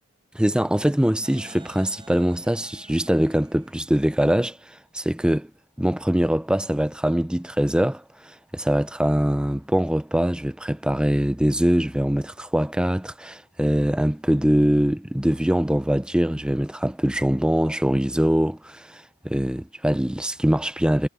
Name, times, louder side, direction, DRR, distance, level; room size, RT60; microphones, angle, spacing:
voice 1, 0.3-5.5 5.8-21.1, equal, 5° right, 0.5 m, -23 dB
sound 1, 1.2-4.5, right 2 dB, 25° right, 5.8 m, -49 dB
head